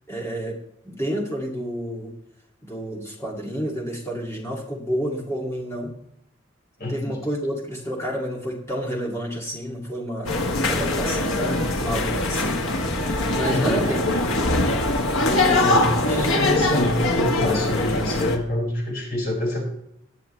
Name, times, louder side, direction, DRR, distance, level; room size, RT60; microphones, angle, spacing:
voice 1, 0.1-0.6 0.8-2.1 2.6-5.9 6.9-10.3 10.7-12.6 13.3-14.1 15.2-16.3, equal, 15° left, -1 dB, 2.3 m, -29 dB
voice 2, 6.8-7.2 13.5-13.8 15.6-19.7, left 1 dB, 45° left, -2 dB, 4.6 m, -26 dB
sound 1, 10.2-18.4, left 2 dB, 90° left, 1.4 m, -22 dB
19.5 x 6.7 x 3.2 m, 0.76 s
head